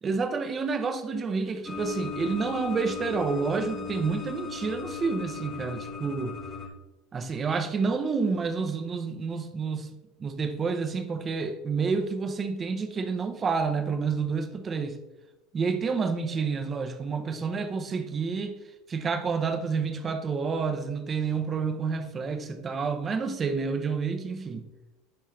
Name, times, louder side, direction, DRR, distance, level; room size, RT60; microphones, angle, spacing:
voice 1, 0.0-6.4 7.1-15.0 15.5-18.6 18.9-24.7, right 5 dB, 30° right, 0.8 m, -29 dB
sound 1, 1.7-6.7, left 5 dB, 25° left, 1.1 m, -37 dB
10.5 x 3.6 x 3.2 m
hypercardioid pair, 90°, 0 cm